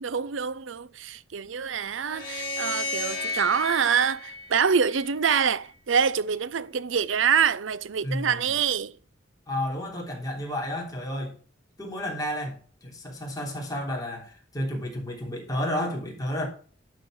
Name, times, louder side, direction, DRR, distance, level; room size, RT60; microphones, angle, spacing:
voice 1, 0.0-9.0, right 7 dB, 75° right, 0.6 m, -25 dB
sound 1, 2.0-5.3, left 2 dB, 45° left, 4.5 m, -33 dB
voice 2, 8.0-8.5 9.5-11.3 11.8-16.5, left 1 dB, 20° left, 3.3 m, -31 dB
12.0 x 4.5 x 6.3 m
head